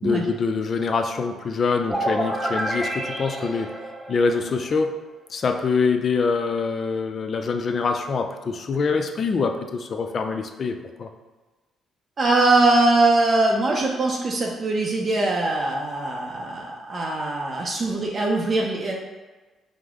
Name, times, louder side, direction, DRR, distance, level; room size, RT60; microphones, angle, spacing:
voice 1, 0.0-3.7 4.1-5.0 5.3-11.1, left 4 dB, 50° left, 5 dB, 0.4 m, -24 dB
sound 1, 1.9-4.7, right 1 dB, 15° right, 0.7 m, -28 dB
voice 2, 12.2-18.9, right 2 dB, 45° right, -1 dB, 0.5 m, -22 dB
4.9 x 2.0 x 3.6 m, 1.3 s
cardioid pair, 90°, 0 cm